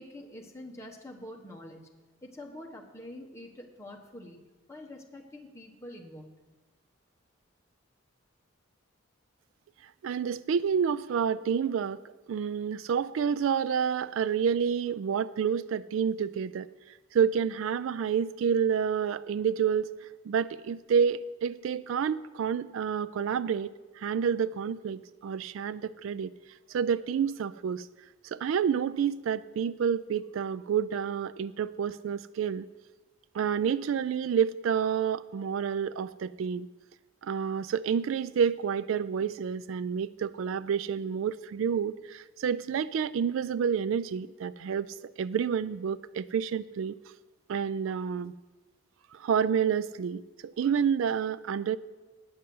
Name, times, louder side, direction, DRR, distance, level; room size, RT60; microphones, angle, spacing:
voice 1, 0.0-1.9 2.2-4.4 4.7-6.3, left 1 dB, 15° left, 0 dB, 1.1 m, -45 dB
voice 2, 10.0-12.0 12.3-16.7 17.1-26.3 26.7-27.9 28.2-32.7 33.3-36.7 37.2-47.0 47.5-48.3 49.1-51.8, right 7 dB, 70° right, 17 dB, 0.3 m, -29 dB
9.6 x 6.6 x 7.7 m, 1.2 s
head